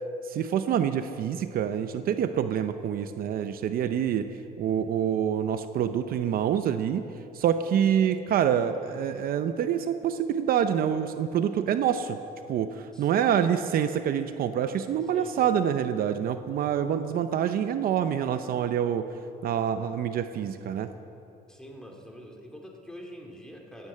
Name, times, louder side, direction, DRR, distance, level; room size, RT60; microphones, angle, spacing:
voice 1, 0.3-4.3 4.6-7.1 7.3-12.2 12.5-19.1 19.4-20.9, right 9 dB, 60° right, 9 dB, 0.7 m, -26 dB
voice 2, 12.9-13.3 15.1-15.5 21.5-23.9, equal, 5° left, 1 dB, 2.4 m, -45 dB
15.5 x 9.4 x 8.6 m, 2.7 s
cardioid pair, 110°, 17 cm